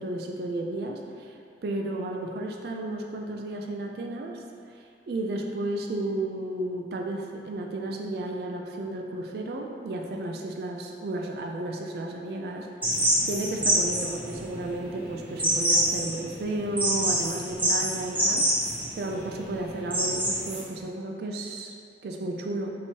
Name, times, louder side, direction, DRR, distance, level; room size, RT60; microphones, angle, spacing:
voice 1, 0.0-1.3 1.6-4.4 5.1-21.8 22.0-22.7, right 2 dB, 60° right, 1 dB, 0.3 m, -33 dB
sound 1, 12.8-20.6, right 1 dB, 10° right, 0.8 m, -26 dB
6.0 x 2.9 x 2.8 m, 2.3 s
head